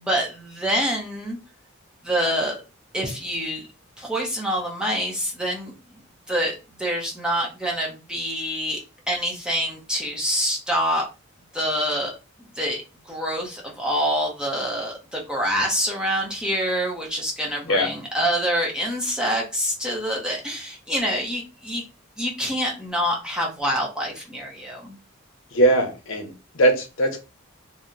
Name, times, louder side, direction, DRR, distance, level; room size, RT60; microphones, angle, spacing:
voice 1, 0.0-1.4 2.0-2.6 2.9-3.7 4.0-5.7 6.3-8.8 9.1-11.1 11.5-12.1 12.5-12.8 13.1-21.8 22.2-25.0, equal, 5° right, -2 dB, 0.6 m, -26 dB
voice 2, 25.5-27.2, right 1 dB, 65° left, 4 dB, 0.7 m, -20 dB
2.8 x 2.0 x 3.6 m, 0.29 s
head